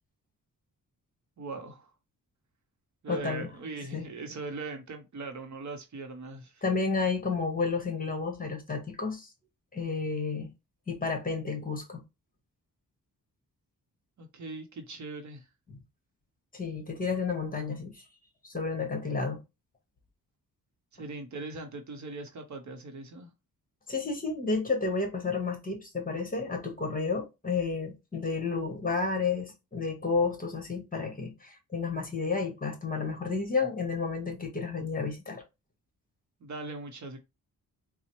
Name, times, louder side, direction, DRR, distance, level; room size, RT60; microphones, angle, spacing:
voice 1, 1.4-1.9 3.0-6.6 14.2-15.5 20.9-23.3 36.4-37.2, right 3 dB, 55° right, 0.8 m, -40 dB
voice 2, 3.1-3.5 3.9-4.0 6.6-9.3 9.7-10.5 10.9-12.0 15.7-15.8 16.5-18.0 18.4-19.4 23.9-35.4, left 4 dB, 25° left, 1.1 m, -31 dB
4.0 x 2.0 x 2.9 m
cardioid pair, 105°, 35 cm